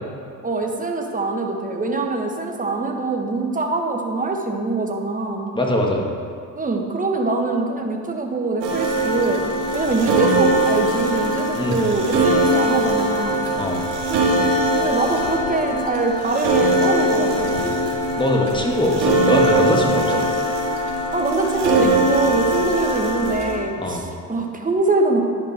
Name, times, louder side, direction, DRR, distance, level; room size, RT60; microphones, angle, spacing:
voice 1, 0.4-5.5 6.5-9.4 9.7-13.4 14.1-14.3 14.7-17.8 21.1-25.2, right 3 dB, 15° right, 2 dB, 1.2 m, -23 dB
voice 2, 5.5-6.0 11.5-11.8 13.6-13.8 17.5-17.6 18.2-20.2 23.8-24.0, left 1 dB, 10° left, -1 dB, 1.7 m, -21 dB
sound 1, 8.6-23.6, right 1 dB, 70° right, 2.0 m, -21 dB
10.0 x 5.2 x 4.3 m, 2.3 s
hypercardioid pair, 60°, 47 cm